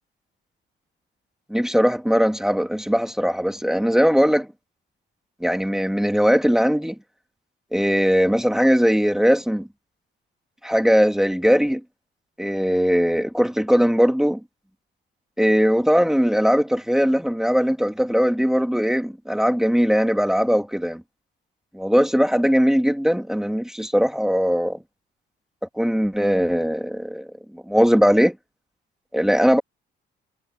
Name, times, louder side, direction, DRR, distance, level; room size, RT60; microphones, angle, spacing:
voice 1, 1.5-4.5 5.4-7.0 7.7-9.7 10.6-11.8 12.4-14.4 15.4-21.0 21.7-24.8 25.8-27.3 27.7-28.3 29.1-29.6, equal, ahead, 2.4 m, -19 dB
cardioid pair, 90°, 20 cm